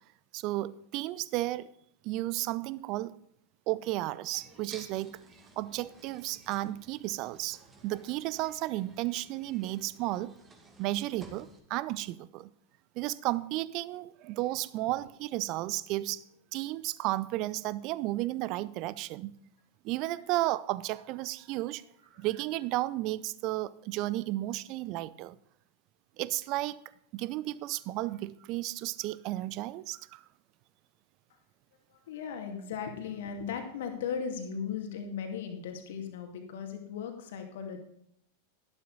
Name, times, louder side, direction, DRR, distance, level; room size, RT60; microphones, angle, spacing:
voice 1, 0.3-1.7 2.0-3.2 3.7-5.2 5.6-10.3 10.8-12.5 13.0-16.2 16.5-19.3 19.8-21.8 22.2-25.4 26.2-26.8 27.1-30.2, right 17 dB, 40° right, 0.6 m, -33 dB
sound 1, 4.3-11.6, right 3 dB, 20° right, 2.2 m, -54 dB
voice 2, 31.9-37.8, left 7 dB, 55° left, 2.2 m, -37 dB
12.5 x 12.0 x 4.0 m
figure-of-eight pair, 90°, 0 cm